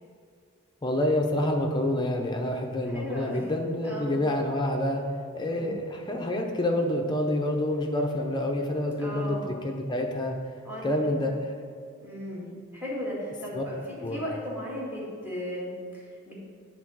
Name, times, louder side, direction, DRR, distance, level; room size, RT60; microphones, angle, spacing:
voice 1, 0.8-5.0 5.3-10.4 10.8-11.3 13.5-13.6 14.0-14.2, left 1 dB, 20° left, 2 dB, 0.7 m, -27 dB
voice 2, 2.9-3.5 3.8-4.1 5.5-5.7 9.0-9.5 10.6-11.1 12.0-13.8 14.1-16.3, equal, 10° right, -6 dB, 2.0 m, -36 dB
8.1 x 4.0 x 6.3 m, 2.2 s
head